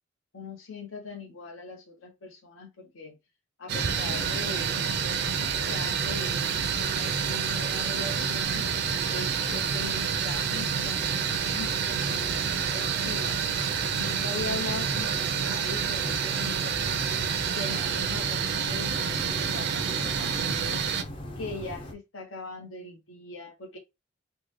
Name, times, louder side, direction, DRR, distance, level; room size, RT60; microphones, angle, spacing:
voice 1, 0.3-3.2 3.6-8.7 9.1-13.4 13.9-17.2 17.5-20.8 21.4-23.8, left 3 dB, 75° left, 0.8 m, -41 dB
sound 1, 3.7-21.9, left 1 dB, 30° left, 0.5 m, -39 dB
sound 2, 3.7-21.0, right 7 dB, 55° right, 0.4 m, -28 dB
3.6 x 2.1 x 3.1 m
head